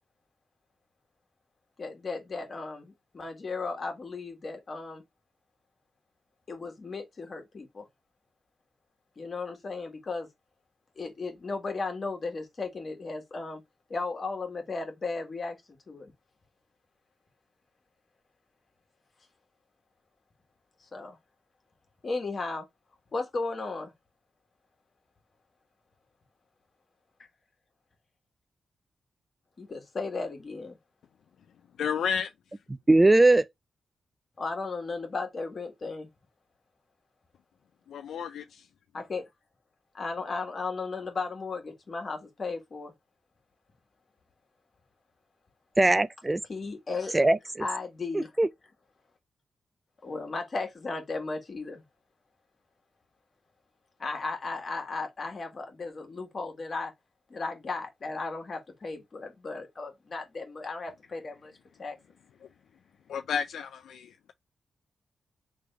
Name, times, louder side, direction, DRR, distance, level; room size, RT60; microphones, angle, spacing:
voice 1, 1.8-5.0 6.5-7.9 9.2-10.3 11.0-13.6 13.9-15.6 15.9-16.1 20.9-21.2 22.0-22.7 23.1-23.9 29.6-30.8 34.4-36.1 38.9-39.3 39.9-42.9 46.5-47.2 47.6-48.3 50.0-51.8 54.0-56.9 57.3-61.5 61.8-62.0, left 3 dB, 50° left, 1.7 m, -35 dB
voice 2, 31.8-32.3 37.9-38.7 62.4-62.5 63.1-64.3, left 7 dB, 80° left, 0.3 m, -32 dB
voice 3, 32.9-33.5 45.8-46.4 47.1-47.6 48.1-48.5, right 2 dB, 25° right, 0.4 m, -20 dB
3.4 x 3.3 x 3.2 m
supercardioid pair, 50°, 0 cm